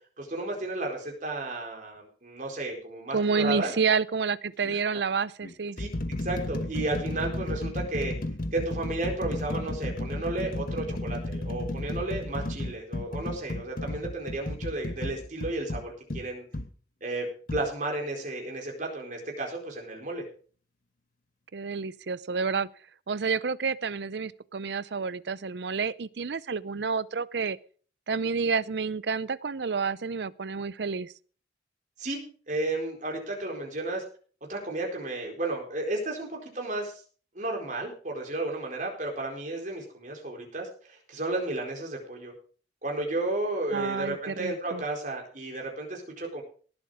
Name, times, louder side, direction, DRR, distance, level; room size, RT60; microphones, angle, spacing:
voice 1, 0.2-3.7 5.8-5.9 6.2-8.1 8.5-16.4 17.0-20.2 32.0-32.2 32.5-34.0 34.5-37.0 37.3-42.3 42.8-46.4, right 2 dB, 45° right, 1 dB, 4.4 m, -33 dB
voice 2, 3.1-5.8 21.5-22.7 23.1-27.6 28.1-31.1 43.7-44.8, right 5 dB, 70° right, 19 dB, 0.6 m, -29 dB
sound 1, 3.5-3.7 4.6-4.8 5.4-16.7 17.5-17.7, left 1 dB, 50° left, 1.1 m, -33 dB
18.0 x 7.9 x 5.0 m, 0.42 s
head